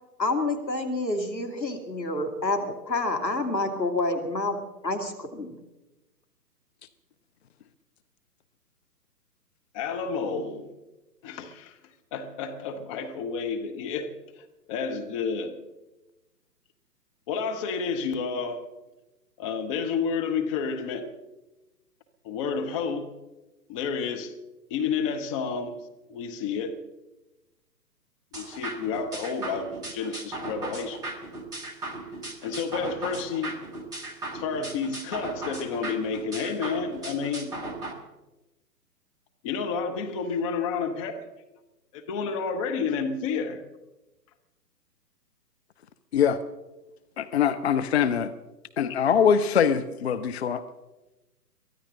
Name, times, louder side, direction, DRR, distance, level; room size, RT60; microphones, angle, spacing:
voice 1, 0.2-5.5, left 2 dB, 85° left, 5 dB, 2.6 m, -28 dB
voice 2, 9.7-10.7 11.2-11.8 12.1-15.6 17.3-18.7 19.4-21.1 22.2-23.2 23.7-24.4 24.7-26.8 28.3-31.0 32.4-33.6 34.3-37.5 39.4-41.3 41.9-43.6, left 5 dB, 20° left, 5 dB, 1.0 m, -30 dB
sound 1, 28.3-37.9, right 2 dB, 10° right, 1.1 m, -37 dB
voice 3, 47.2-48.3 48.8-50.6, left 7 dB, 40° left, 11 dB, 0.7 m, -23 dB
23.0 x 14.5 x 3.8 m, 1.1 s
figure-of-eight pair, 130°, 50 cm